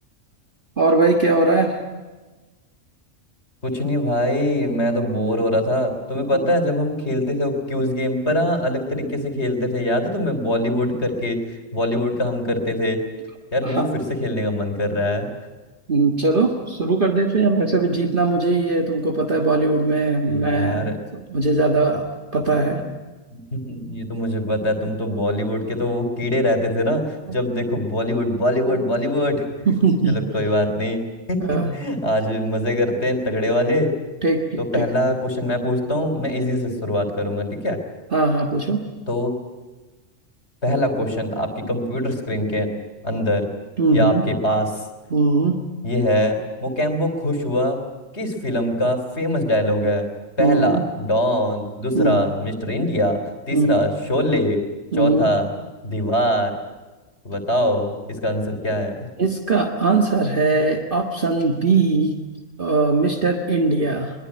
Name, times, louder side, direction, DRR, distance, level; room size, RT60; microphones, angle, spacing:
voice 1, 0.8-1.8 6.3-6.5 13.6-13.9 15.9-22.1 22.3-22.8 28.7-28.9 29.7-30.2 31.4-31.7 34.2-34.9 38.1-38.9 43.8-44.3 45.1-45.6 50.4-50.9 51.9-52.3 53.5-53.8 54.9-55.3 59.2-62.1 62.6-64.1, right 3 dB, 40° right, 3 dB, 1.9 m, -20 dB
voice 2, 3.6-11.4 11.7-13.0 13.5-15.3 20.2-20.9 22.3-22.8 23.5-27.0 27.3-29.7 30.1-31.0 31.3-33.9 34.6-37.8 39.1-39.3 40.6-42.7 43.0-43.5 43.9-44.7 45.8-47.8 48.1-50.1 50.4-53.2 53.5-54.6 55.0-55.5 55.8-56.5 57.3-59.1, left 1 dB, 55° left, 7 dB, 3.7 m, -23 dB
22.0 x 22.0 x 9.9 m, 1.2 s
omnidirectional pair, 1.3 m